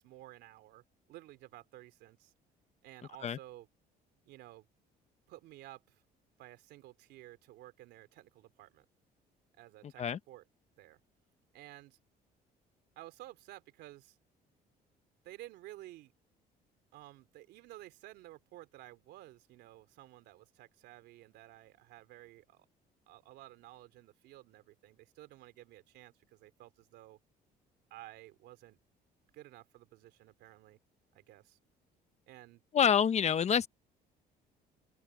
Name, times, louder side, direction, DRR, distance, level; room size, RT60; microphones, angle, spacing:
voice 1, 0.0-2.3 2.8-3.7 4.2-4.7 5.3-6.0 6.4-8.8 9.6-10.4 10.8-11.0 11.5-12.0 12.9-14.2 15.2-16.1 16.9-22.7 23.1-27.2 27.9-28.8 29.3-30.8 31.1-31.6 32.3-32.6, right 16 dB, 85° right, 3.4 m, -53 dB
voice 2, 32.7-33.7, left 8 dB, 40° left, 1.0 m, -27 dB
open air
cardioid pair, 110°, 17 cm